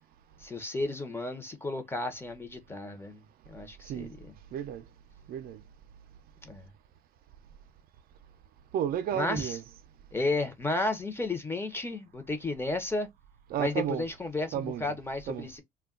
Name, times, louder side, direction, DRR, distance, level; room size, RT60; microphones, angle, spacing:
voice 1, 0.4-3.2 3.5-4.3 6.4-6.7 9.1-9.6 10.1-13.1 13.6-15.6, left 2 dB, 15° left, 0.7 m, -33 dB
voice 2, 4.5-4.8 5.3-5.6 8.7-9.6 13.5-14.1 14.5-15.0 15.3-15.5, right 9 dB, 60° right, 0.4 m, -32 dB
2.2 x 2.2 x 3.6 m
cardioid pair, 110°, 17 cm